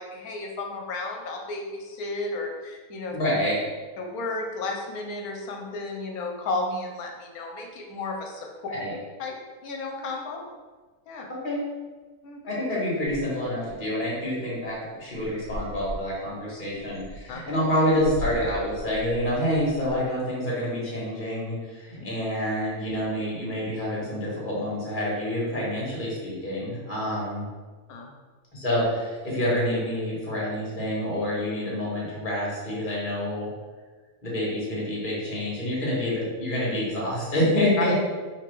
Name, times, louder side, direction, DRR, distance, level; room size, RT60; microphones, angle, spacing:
voice 1, 0.0-3.2 4.0-8.7 9.2-9.3 9.6-10.4 11.1-11.3 12.2-12.4 17.3-17.4 22.0-22.1 27.9-28.1, left 3 dB, 75° left, 1 dB, 1.2 m, -33 dB
voice 2, 3.1-3.6 8.7-8.9 11.4-11.6 12.5-27.5 28.5-33.5 34.2-37.9, left 1 dB, 35° left, -6 dB, 1.5 m, -27 dB
sound 1, 13.0-13.8 14.2-14.3 14.6-14.8 15.1-20.1, left 1 dB, 65° right, 1.5 m, -39 dB
5.0 x 3.1 x 3.3 m, 1.3 s
omnidirectional pair, 1.6 m